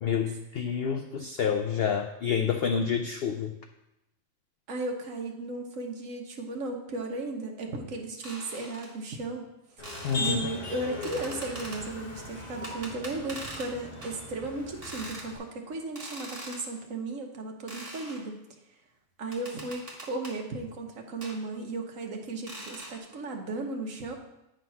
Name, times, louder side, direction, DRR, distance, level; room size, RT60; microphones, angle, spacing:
voice 1, 0.0-3.6 10.0-10.5, left 7 dB, 70° left, 5 dB, 0.6 m, -28 dB
voice 2, 4.7-9.4 10.2-18.4 19.2-24.2, right 2 dB, 65° right, 2 dB, 1.4 m, -35 dB
sound 1, 8.2-8.9 9.8-10.3 11.0-11.8 12.6-13.7 14.0-14.2 14.8-15.3 16.0-16.6 17.7-18.2 19.3-20.4 21.2-21.4 22.5-23.0, right 1 dB, 25° right, 1.6 m, -42 dB
Motor vehicle (road), 9.8-15.4, left 2 dB, 40° left, 1.6 m, -39 dB
9.2 x 3.7 x 5.6 m, 0.90 s
omnidirectional pair, 1.5 m